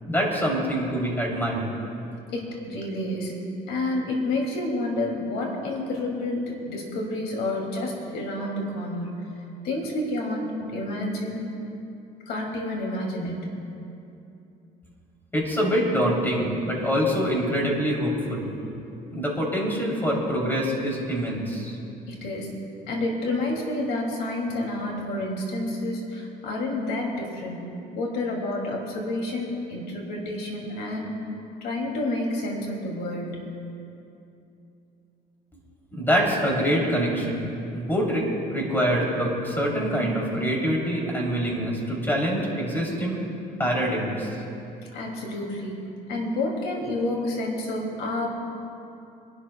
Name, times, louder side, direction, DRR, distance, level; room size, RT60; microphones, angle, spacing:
voice 1, 0.1-1.7 15.3-18.5 19.1-21.8 35.9-43.2 43.6-44.4, equal, 10° left, -2 dB, 3.2 m, -25 dB
voice 2, 2.3-3.3 3.7-9.2 9.6-11.4 12.3-13.5 22.1-22.5 22.9-27.6 27.9-31.1 31.6-33.4 44.9-48.3, left 1 dB, 80° left, 0 dB, 2.6 m, -29 dB
25.0 x 12.0 x 2.3 m, 2.8 s
cardioid pair, 110°, 17 cm